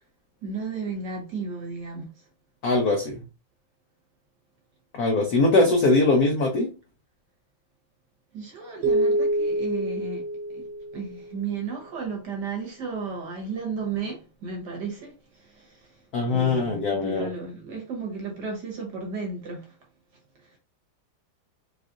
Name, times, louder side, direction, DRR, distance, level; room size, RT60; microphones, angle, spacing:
voice 1, 0.4-2.1 5.3-5.8 8.3-10.2 10.5-10.7 10.9-15.9 16.2-19.8 20.4-20.5, right 4 dB, 60° right, 1.4 m, -34 dB
voice 2, 2.6-3.1 4.9-6.7 16.1-17.3, left 2 dB, 75° left, 0.8 m, -21 dB
sound 1, 8.8-11.4, right 1 dB, 80° right, 0.9 m, -26 dB
4.4 x 2.4 x 2.5 m
omnidirectional pair, 2.4 m